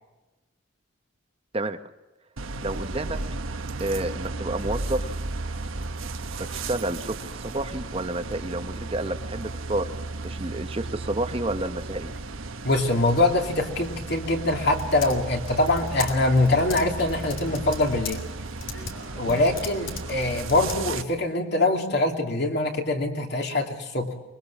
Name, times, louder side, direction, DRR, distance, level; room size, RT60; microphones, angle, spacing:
sound 1, 2.4-21.0, right 3 dB, 85° right, 1.2 m, -34 dB
voice 1, 2.6-3.2 3.8-5.2 6.3-9.9 10.2-12.1 19.3-19.4, right 1 dB, 30° right, 8 dB, 0.9 m, -30 dB
voice 2, 12.6-18.2 19.2-24.1, left 2 dB, 55° left, 3 dB, 2.9 m, -23 dB
Typing, 13.8-21.2, left 4 dB, 70° left, 3.1 m, -40 dB
24.0 x 22.0 x 7.3 m, 1.1 s
head